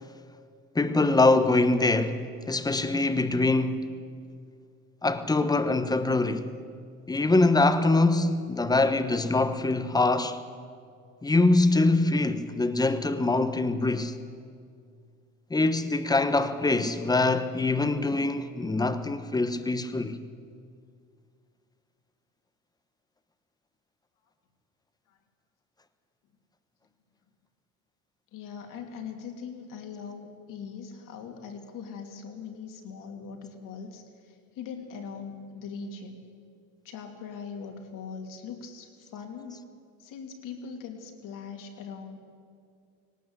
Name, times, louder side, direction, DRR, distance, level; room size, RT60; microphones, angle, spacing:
voice 1, 0.7-2.2 2.5-3.9 5.0-6.5 7.1-10.4 11.2-14.1 15.5-20.2, left 2 dB, 10° left, 1.1 m, -24 dB
voice 2, 28.3-36.2 36.8-39.7 40.0-42.2, left 6 dB, 60° left, 3.0 m, -41 dB
18.5 x 18.0 x 8.2 m
supercardioid pair, 110°, 36 cm